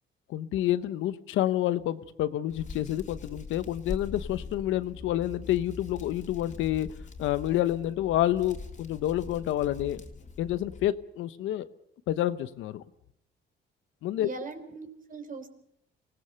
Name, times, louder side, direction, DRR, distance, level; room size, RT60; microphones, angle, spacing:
voice 1, 0.3-6.9 7.2-10.0 10.4-11.7 12.1-12.8 14.0-14.3, left 13 dB, 90° left, 14 dB, 1.0 m, -28 dB
Hands, 2.5-10.9, left 4 dB, 35° left, 2.9 m, -42 dB
voice 2, 14.2-15.5, right 4 dB, 45° right, 8 dB, 3.6 m, -40 dB
25.5 x 17.5 x 6.9 m, 0.71 s
cardioid pair, 90°, 20 cm